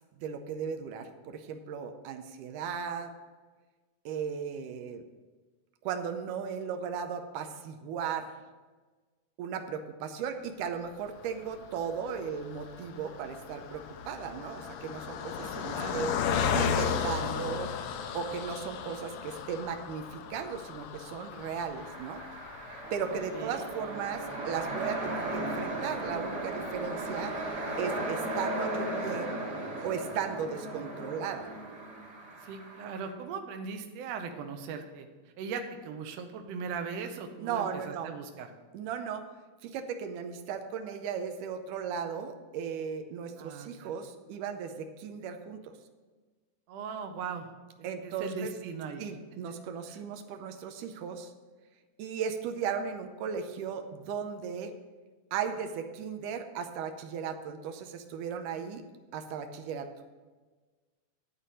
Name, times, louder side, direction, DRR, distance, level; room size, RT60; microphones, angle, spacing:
voice 1, 0.2-3.1 4.1-5.0 5.8-8.3 9.4-16.1 16.5-17.7 18.1-22.2 22.9-27.3 27.8-29.4 29.8-31.5 37.4-38.1 38.7-39.3 39.6-45.7 47.8-48.5 49.0-51.3 52.0-54.7 55.3-58.8 59.1-59.9, right 7 dB, 90° right, 6 dB, 2.2 m, -36 dB
Car passing by, 11.0-26.5 27.0-27.1 27.4-27.6, left 7 dB, 75° left, 1.6 m, -36 dB
voice 2, 15.4-16.1 23.1-23.7 32.4-35.1 35.4-38.5 43.4-43.9 46.7-47.5 47.8-49.1 49.9-50.0, right 5 dB, 70° right, 6 dB, 1.7 m, -39 dB
sound 1, 21.7-33.1, right 1 dB, 35° right, 1.2 m, -36 dB
11.0 x 4.1 x 7.6 m, 1.3 s
omnidirectional pair, 3.7 m